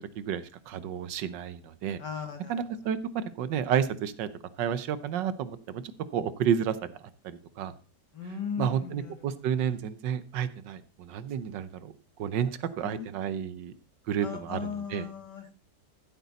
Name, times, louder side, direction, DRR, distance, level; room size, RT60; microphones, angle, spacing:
voice 1, 0.0-2.0 2.5-4.3 4.6-5.8 6.1-6.9 7.2-7.7 8.6-11.9 12.2-13.7 14.1-15.0, right 8 dB, 80° right, 14 dB, 1.5 m, -31 dB
voice 2, 2.0-2.6 8.1-9.4 12.4-12.5 12.8-13.4 14.2-15.5, left 6 dB, 70° left, 4 dB, 2.8 m, -38 dB
14.5 x 8.2 x 4.1 m, 0.35 s
omnidirectional pair, 1.9 m